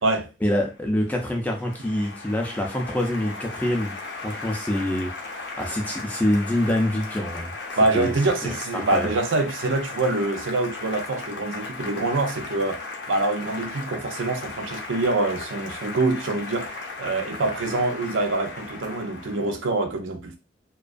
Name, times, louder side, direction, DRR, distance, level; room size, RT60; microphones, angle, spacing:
voice 1, 0.4-3.9 4.2-5.1 5.6-7.5 7.9-8.1 8.4-9.1, left 1 dB, 10° left, 0.4 m, -25 dB
Applause, 0.7-19.6, left 3 dB, 70° left, 0.6 m, -36 dB
voice 2, 7.8-20.4, right 2 dB, 90° right, 0.5 m, -25 dB
2.2 x 2.2 x 2.4 m
head